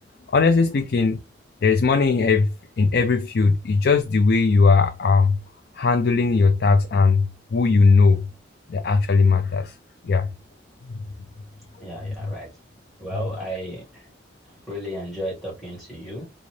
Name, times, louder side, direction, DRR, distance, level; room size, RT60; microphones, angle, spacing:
voice 1, 0.3-1.2 1.6-2.5 2.8-5.4 5.8-8.3 8.7-9.7 10.0-10.3 10.9-11.0, left 4 dB, 60° left, 0.4 m, -18 dB
voice 2, 11.8-12.5 13.0-14.1 14.5-16.2, equal, ahead, 1.9 m, -34 dB
3.8 x 2.6 x 3.2 m
head